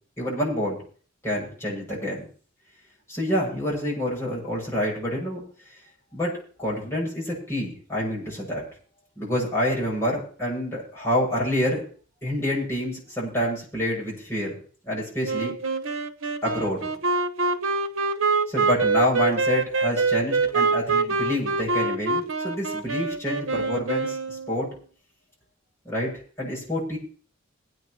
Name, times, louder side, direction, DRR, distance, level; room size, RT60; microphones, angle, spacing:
voice 1, 0.2-0.8 1.2-2.3 3.1-5.4 6.1-6.3 6.6-8.6 9.2-11.8 12.2-14.5 14.9-15.5 16.4-16.9 18.5-24.7 25.8-26.1 26.4-27.0, equal, 15° left, -5 dB, 7.4 m, -27 dB
Wind instrument woodwind instrument, 15.2-24.7, right 4 dB, 85° right, 1.1 m, -25 dB
22.5 x 9.5 x 3.2 m, 0.42 s
head